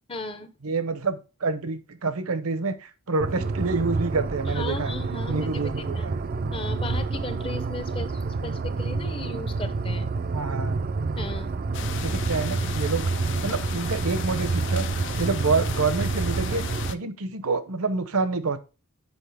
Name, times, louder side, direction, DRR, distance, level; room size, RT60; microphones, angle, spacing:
voice 1, 0.1-0.5 4.5-6.1 6.5-10.1 11.2-11.6 15.3-15.4, left 3 dB, 25° left, 10 dB, 0.7 m, -36 dB
voice 2, 0.6-4.9 5.3-6.2 10.3-10.8 12.0-13.1 13.4-14.9 15.1-18.6, right 4 dB, 70° right, 11 dB, 0.8 m, -27 dB
sound 1, 3.2-16.9, right 3 dB, 40° right, 0.4 m, -28 dB
sound 2, 11.7-17.0, left 9 dB, 55° left, 0.4 m, -36 dB
8.1 x 5.0 x 3.4 m, 0.32 s
head